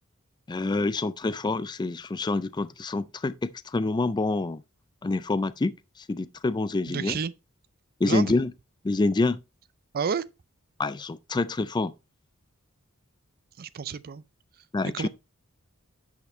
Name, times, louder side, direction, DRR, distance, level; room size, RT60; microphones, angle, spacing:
voice 1, 0.5-4.6 5.0-5.7 6.1-7.2 8.0-8.5 8.8-9.4 10.8-11.9 14.7-15.1, left 3 dB, 20° left, 0.4 m, -27 dB
voice 2, 6.9-7.3 8.0-8.3 9.9-10.2 13.6-14.2 14.8-15.1, right 6 dB, 45° right, 0.4 m, -30 dB
10.5 x 5.8 x 3.1 m
head